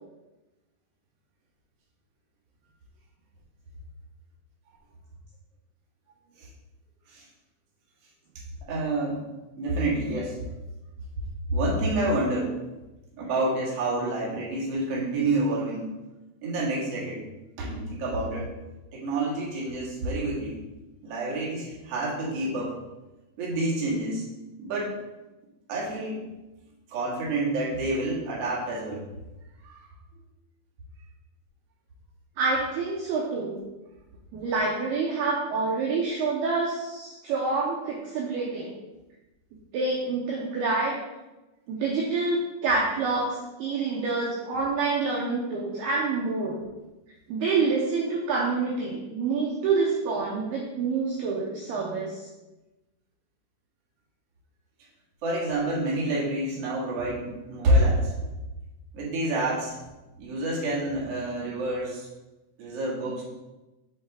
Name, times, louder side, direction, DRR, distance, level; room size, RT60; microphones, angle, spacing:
voice 1, 8.6-9.2 9.6-10.4 11.5-12.5 13.1-15.9 16.4-17.2 17.6-18.5 18.9-20.6 21.0-22.7 23.4-24.2 24.6-24.9 25.7-26.2 26.9-29.0 29.6-29.9 55.2-58.1 58.9-59.8 60.2-62.1 62.6-63.2, right 1 dB, 50° right, -5 dB, 1.8 m, -28 dB
voice 2, 32.4-33.6 34.3-38.7 39.7-41.0 41.7-46.6 47.3-52.3, right 4 dB, 80° right, -3 dB, 2.4 m, -27 dB
6.4 x 6.4 x 3.6 m, 1.0 s
omnidirectional pair, 5.6 m